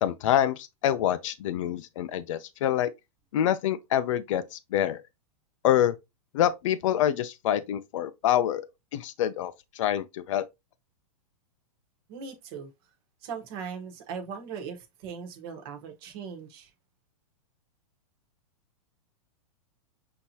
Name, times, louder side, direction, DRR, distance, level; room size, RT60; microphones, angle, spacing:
voice 1, 0.0-2.9 3.3-5.0 5.6-5.9 6.3-8.6 8.9-10.4, left 11 dB, 55° left, 0.6 m, -26 dB
voice 2, 12.1-12.7 13.2-16.7, right 6 dB, 40° right, 1.2 m, -39 dB
6.3 x 2.9 x 2.8 m
supercardioid pair, 160°, 19 cm